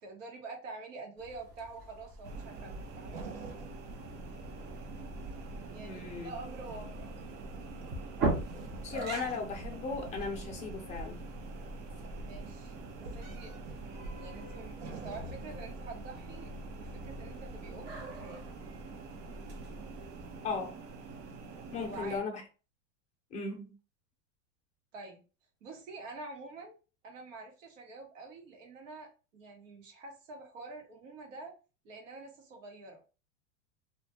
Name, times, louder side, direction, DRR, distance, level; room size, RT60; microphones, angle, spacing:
voice 1, 0.0-3.3 5.7-7.1 12.2-18.4 21.7-22.2 24.9-25.2 25.6-26.8 27.0-31.5 31.8-33.0, right 3 dB, 85° right, 1.1 m, -47 dB
sound 1, 1.2-20.4, right 2 dB, 25° right, 0.5 m, -42 dB
sound 2, 2.2-22.2, right 4 dB, 70° right, 0.7 m, -46 dB
voice 2, 5.8-6.3 8.8-11.2 20.4-20.8 21.7-22.4 23.3-23.7, left 4 dB, 20° left, 0.5 m, -37 dB
2.4 x 2.2 x 3.0 m
supercardioid pair, 140°, 37 cm